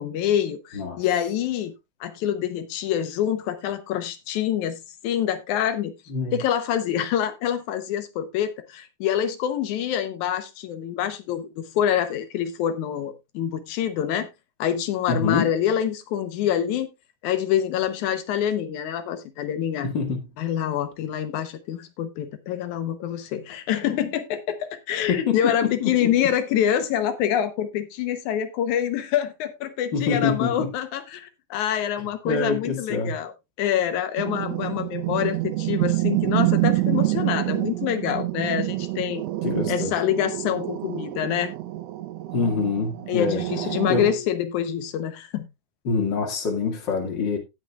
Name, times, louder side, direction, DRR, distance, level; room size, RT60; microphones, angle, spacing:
voice 1, 0.0-1.7 2.0-5.9 6.3-14.3 14.6-16.9 17.2-19.9 20.4-33.3 33.6-39.2 39.7-41.5 43.1-45.5, left 10 dB, 85° left, 2.3 m, -26 dB
voice 2, 15.1-15.5 19.8-20.2 25.1-26.1 29.9-30.7 32.2-33.1 39.4-39.9 42.3-43.4 43.9-44.1 45.9-47.4, left 5 dB, 40° left, 2.5 m, -25 dB
sound 1, 34.2-44.1, right 18 dB, 70° right, 1.7 m, -27 dB
17.5 x 6.5 x 2.3 m
omnidirectional pair, 3.3 m